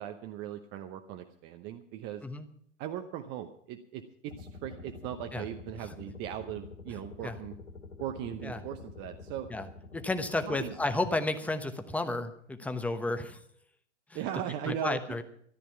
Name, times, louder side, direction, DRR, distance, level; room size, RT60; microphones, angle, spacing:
voice 1, 0.0-2.2 2.8-7.5 8.0-9.5 10.5-10.7 14.1-15.2, right 11 dB, 30° right, 7 dB, 0.9 m, -38 dB
sound 1, 4.3-11.1, left 3 dB, 85° left, 2.4 m, -48 dB
voice 2, 9.9-13.4 14.1-14.2 14.7-15.2, left 2 dB, 5° left, 8 dB, 1.0 m, -32 dB
14.0 x 12.0 x 5.8 m, 0.64 s
figure-of-eight pair, 110°, 36 cm